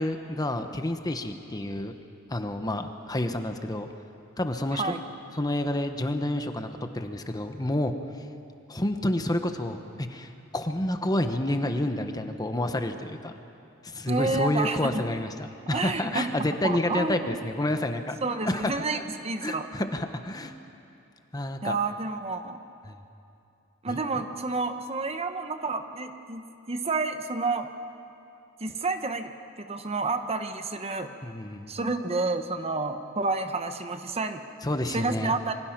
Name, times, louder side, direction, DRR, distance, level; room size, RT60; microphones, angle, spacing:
voice 1, 0.0-1.9 2.3-3.9 4.4-4.9 5.3-6.7 6.9-7.9 8.7-13.3 13.8-15.3 15.7-18.2 18.4-19.0 19.4-20.5 21.3-21.7 22.8-23.0 23.9-24.0 31.2-31.7 34.6-35.3, left 1 dB, 20° left, 7 dB, 1.1 m, -29 dB
voice 2, 14.1-15.0 15.7-16.3 16.6-17.4 18.2-19.7 21.6-22.6 23.8-27.7 28.6-29.3 29.6-31.1 31.7-34.4 34.9-35.5, right 3 dB, 30° right, 8 dB, 1.0 m, -29 dB
26.5 x 24.0 x 6.0 m, 2.6 s
head